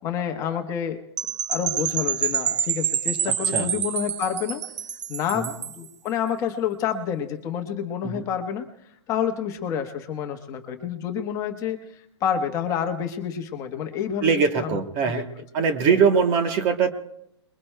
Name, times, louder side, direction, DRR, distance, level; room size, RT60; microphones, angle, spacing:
voice 1, 0.0-1.0 1.5-4.6 5.1-8.7 9.1-11.8 12.2-14.8 15.1-15.2 15.8-16.0, left 8 dB, 20° left, 5 dB, 1.2 m, -28 dB
Percussion / Wind chime, 1.2-5.9, right 8 dB, 85° right, 0.6 m, -27 dB
voice 2, 14.2-15.3 15.5-16.9, right 6 dB, 30° right, 7 dB, 1.0 m, -22 dB
27.0 x 22.0 x 2.2 m, 0.77 s
hypercardioid pair, 155°, 15 cm